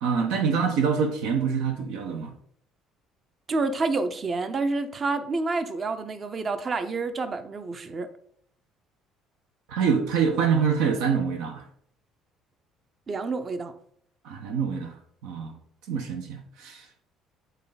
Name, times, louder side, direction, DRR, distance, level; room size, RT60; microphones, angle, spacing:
voice 1, 0.0-2.3 9.7-11.6 14.2-14.9 15.2-15.5 15.9-16.8, right 6 dB, 85° right, 5 dB, 1.2 m, -25 dB
voice 2, 3.5-8.1 13.1-13.7, right 3 dB, 35° right, 10 dB, 0.7 m, -28 dB
8.2 x 3.9 x 4.1 m, 0.63 s
cardioid pair, 100°, 0 cm